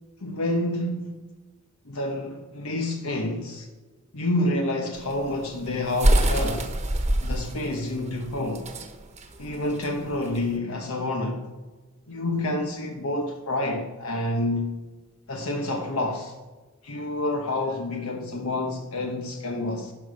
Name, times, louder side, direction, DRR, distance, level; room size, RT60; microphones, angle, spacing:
voice 1, 0.2-1.1 1.9-3.7 4.1-6.7 7.2-8.7 9.4-11.5 12.1-14.8 15.3-16.3 16.8-19.9, left 1 dB, 85° left, 1.1 m, -28 dB
sound 1, 5.0-10.5, right 1 dB, 30° right, 1.1 m, -25 dB
12.0 x 5.4 x 5.2 m
head